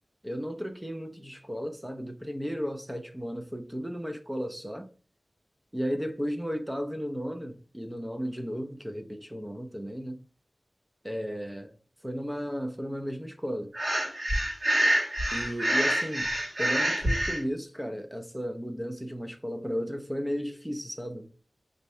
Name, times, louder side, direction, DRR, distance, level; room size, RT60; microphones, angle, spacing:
voice 1, 0.2-4.9 5.7-10.2 11.0-11.7 12.0-13.7 15.3-16.3 16.6-21.3, equal, 10° right, 0.5 m, -34 dB
Breathing, 13.7-17.4, right 1 dB, 65° right, 1.2 m, -26 dB
4.5 x 2.6 x 3.2 m
wide cardioid pair, 80°, 0 cm